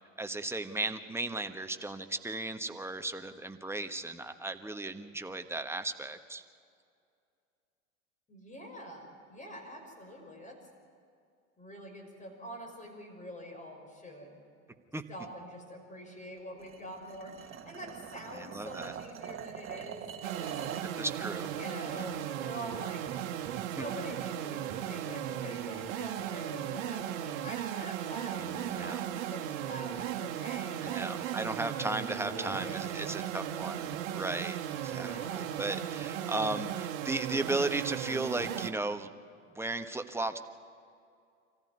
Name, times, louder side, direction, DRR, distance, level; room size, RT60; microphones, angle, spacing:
voice 1, 0.2-6.4 14.9-15.0 18.3-18.9 21.0-21.5 21.9-22.1 23.5-23.8 28.4-29.0 30.8-39.1 39.5-40.4, right 2 dB, 5° right, 7 dB, 1.2 m, -36 dB
voice 2, 8.3-10.6 11.6-14.4 15.1-20.6 21.5-23.3 23.8-31.1 32.3-33.4 34.9-35.6, equal, 20° left, 3 dB, 5.9 m, -45 dB
sound 1, 16.6-20.9, right 9 dB, 30° right, 1.7 m, -44 dB
sound 2, 20.2-38.7, right 11 dB, 60° right, 1.6 m, -36 dB
25.5 x 14.5 x 9.6 m, 2.4 s
hypercardioid pair, 85°, 39 cm